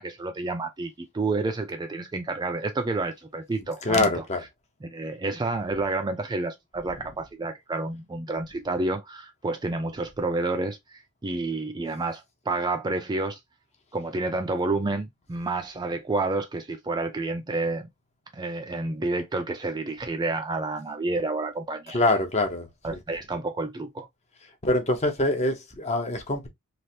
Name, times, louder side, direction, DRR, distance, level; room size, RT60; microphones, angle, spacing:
voice 1, 0.0-4.2 4.8-13.4 13.9-17.9 18.3-22.1 22.8-24.1, right 3 dB, 20° right, 0.4 m, -29 dB
voice 2, 3.9-4.4 21.9-22.7 24.6-26.5, left 2 dB, 30° left, 0.7 m, -24 dB
3.2 x 2.5 x 2.7 m
head